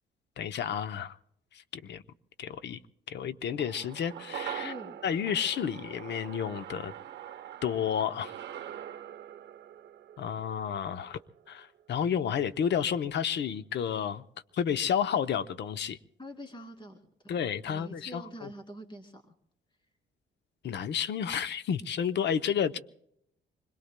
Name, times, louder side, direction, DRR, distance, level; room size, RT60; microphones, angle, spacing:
voice 1, 0.4-1.2 1.7-2.0 2.4-2.8 3.1-4.7 5.0-6.9 7.6-8.3 10.2-11.2 11.5-14.2 14.5-16.0 17.3-18.5 20.6-22.8, left 8 dB, 60° left, 0.8 m, -31 dB
sound 1, 3.6-12.1 12.4-12.5, right 10 dB, 60° right, 0.9 m, -44 dB
voice 2, 4.6-5.0 16.2-17.4 17.7-19.3, equal, 25° left, 2.4 m, -45 dB
26.5 x 21.5 x 2.2 m
cardioid pair, 90°, 20 cm